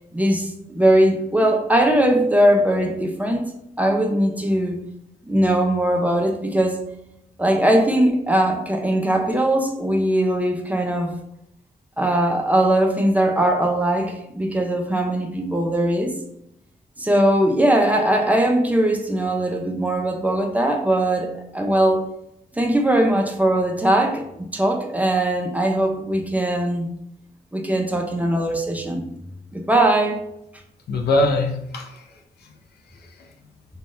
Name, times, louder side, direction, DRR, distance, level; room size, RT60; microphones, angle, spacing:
voice 1, 0.1-4.8 5.3-6.8 7.4-11.1 12.0-16.1 17.0-22.1 22.6-26.9 27.5-29.0 29.5-30.2, right 1 dB, 10° right, 2 dB, 0.5 m, -20 dB
voice 2, 30.9-32.5 32.9-33.3, left 2 dB, 80° left, 2 dB, 0.5 m, -24 dB
2.7 x 2.3 x 3.0 m, 0.79 s
cardioid pair, 60°, 16 cm